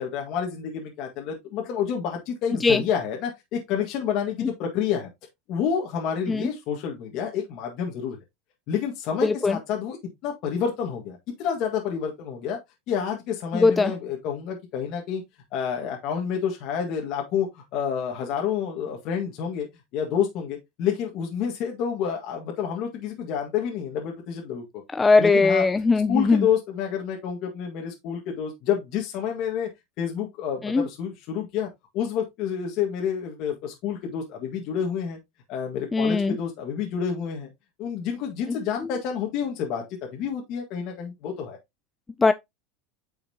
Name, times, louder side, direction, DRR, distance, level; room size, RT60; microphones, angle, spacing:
voice 1, 0.0-5.1 5.5-8.2 8.7-10.0 10.2-12.6 12.9-15.2 15.5-19.7 19.9-24.8 25.2-25.7 26.1-29.7 30.0-31.7 31.9-35.2 35.5-37.5 37.8-39.8 40.1-41.6, left 7 dB, 50° left, 1.8 m, -29 dB
voice 2, 9.2-9.6 13.5-13.9 24.9-26.5 30.6-30.9 35.9-36.4 42.2-42.3, left 4 dB, 10° left, 0.4 m, -20 dB
9.0 x 5.7 x 2.8 m
supercardioid pair, 150°, 0 cm